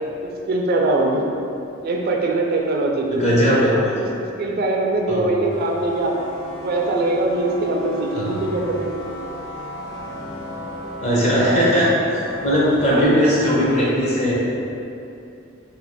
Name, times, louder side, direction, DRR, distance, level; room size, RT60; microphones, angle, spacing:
voice 1, 0.2-1.2 1.8-3.2 3.7-6.1 6.6-8.9 11.5-11.6 12.9-13.3, right 2 dB, 50° right, 0 dB, 0.3 m, -22 dB
voice 2, 3.1-3.9 5.1-5.3 8.1-8.4 11.0-14.3, equal, 35° left, -7 dB, 0.8 m, -19 dB
sound 1, 5.5-13.8, left 1 dB, 75° left, 0.5 m, -35 dB
3.0 x 2.3 x 4.2 m, 2.7 s
head